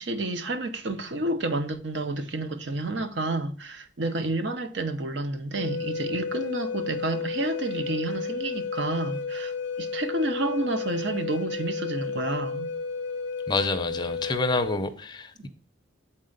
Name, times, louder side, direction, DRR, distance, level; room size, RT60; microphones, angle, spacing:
voice 1, 0.0-12.7 15.4-15.5, right 2 dB, 70° right, 0.8 m, -30 dB
Wind instrument woodwind instrument, 5.5-14.8, left 5 dB, 75° left, 0.5 m, -32 dB
voice 2, 13.5-15.5, left 3 dB, 20° left, 0.5 m, -28 dB
7.5 x 4.3 x 3.8 m
head